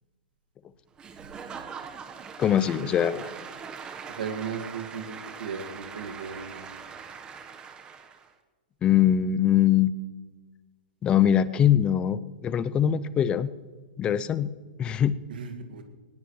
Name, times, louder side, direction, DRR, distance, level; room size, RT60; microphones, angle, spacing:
Applause / Crowd, 1.0-8.3, right 6 dB, 20° right, 1.2 m, -42 dB
voice 1, 2.4-3.3 8.8-9.9 11.0-13.5 14.0-14.5 14.8-15.2, left 10 dB, 20° left, 16 dB, 0.5 m, -22 dB
voice 2, 4.1-6.7 15.3-15.8, right 6 dB, 80° right, 5 dB, 2.0 m, -36 dB
20.0 x 18.0 x 3.2 m, 1.4 s
hypercardioid pair, 145°, 5 cm